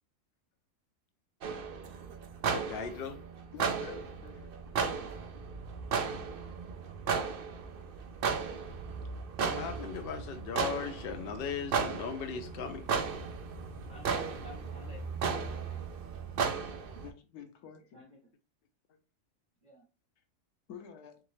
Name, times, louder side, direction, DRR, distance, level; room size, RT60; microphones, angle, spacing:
sound 1, 1.4-17.1, right 5 dB, 80° right, 0.4 m, -35 dB
voice 1, 2.5-3.2 9.4-12.9, left 6 dB, 60° left, 0.6 m, -38 dB
voice 2, 3.5-5.1 17.0-18.0 20.7-21.2, left 7 dB, 75° left, 1.3 m, -49 dB
voice 3, 13.9-15.8 17.9-18.2 19.6-19.8, left 1 dB, 35° right, 0.8 m, -52 dB
3.9 x 3.6 x 3.1 m
omnidirectional pair, 1.7 m